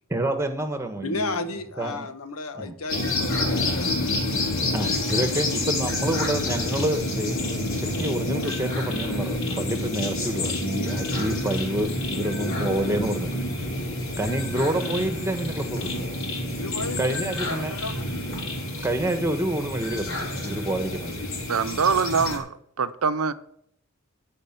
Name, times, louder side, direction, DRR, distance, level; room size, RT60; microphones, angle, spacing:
voice 1, 0.1-1.4 1.8-2.1 2.6-2.7 4.7-13.4 14.2-15.9 17.0-17.7 18.8-21.2, right 1 dB, 15° right, 1.4 m, -28 dB
voice 2, 1.0-3.9 13.8-13.9 14.9-15.0 16.5-18.1, left 3 dB, 80° left, 1.3 m, -34 dB
sound 1, 2.9-22.4, left 1 dB, 65° left, 4.1 m, -28 dB
voice 3, 21.5-23.3, right 5 dB, 85° right, 0.8 m, -24 dB
14.5 x 5.1 x 9.2 m
head